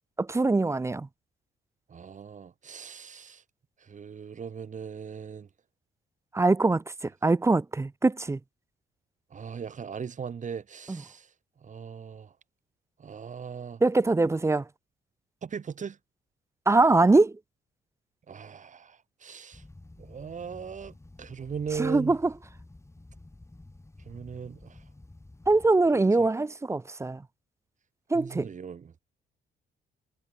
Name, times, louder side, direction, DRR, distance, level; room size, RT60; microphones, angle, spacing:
voice 1, 0.2-1.1 6.3-6.8 7.2-8.4 10.9-11.0 13.8-14.6 16.7-17.3 21.8-22.2 25.5-27.2 28.1-28.5, right 3 dB, 15° right, 0.5 m, -22 dB
voice 2, 1.9-3.4 3.8-5.5 9.3-11.3 11.6-12.3 13.0-13.8 15.4-16.0 18.3-19.6 20.0-22.2 24.0-24.8 25.8-26.0 28.1-29.0, right 6 dB, 40° right, 1.2 m, -39 dB
sound 1, 19.5-25.7, left 2 dB, 15° left, 5.1 m, -51 dB
cardioid pair, 90°, 20 cm